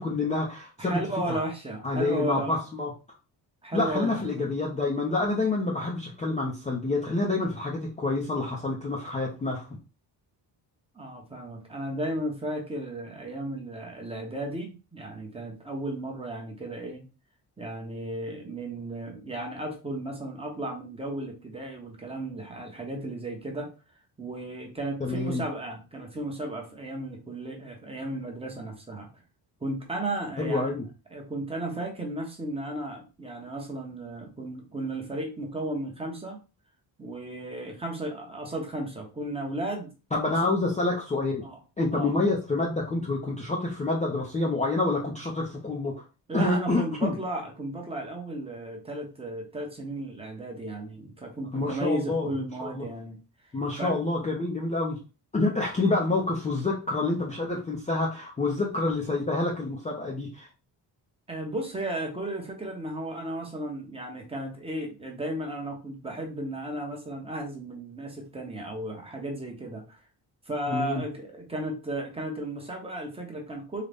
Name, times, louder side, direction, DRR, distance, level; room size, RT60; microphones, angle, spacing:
voice 1, 0.0-1.0 1.3-1.4 1.8-2.9 3.7-9.7 25.0-25.4 30.4-30.8 40.1-41.4 41.8-46.0 46.3-47.1 51.5-52.3 52.6-52.9 53.5-55.0 55.3-60.5 70.7-71.0, left 2 dB, 15° left, -3 dB, 0.5 m, -27 dB
voice 2, 0.8-2.6 3.6-4.2 10.9-17.0 17.6-23.7 24.2-29.1 29.6-30.8 31.1-36.4 37.0-39.9 40.3-40.5 41.4-41.6 41.9-42.1 46.3-53.2 53.8-54.1 61.3-70.0 70.5-73.8, right 1 dB, 15° right, 1 dB, 0.8 m, -34 dB
3.9 x 2.1 x 3.3 m, 0.31 s
cardioid pair, 165°, 43 cm